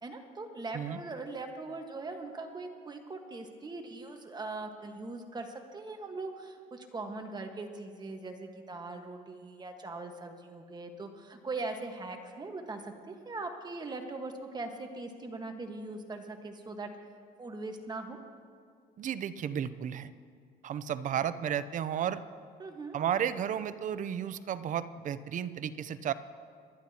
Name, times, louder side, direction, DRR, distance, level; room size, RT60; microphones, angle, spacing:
voice 1, 0.0-16.9 17.4-18.2 22.6-23.0, right 3 dB, 25° right, 4 dB, 1.4 m, -41 dB
voice 2, 19.0-20.1 20.6-22.2 22.9-26.1, right 9 dB, 50° right, 14 dB, 0.6 m, -33 dB
25.0 x 11.5 x 2.9 m, 2.1 s
cardioid pair, 110°, 17 cm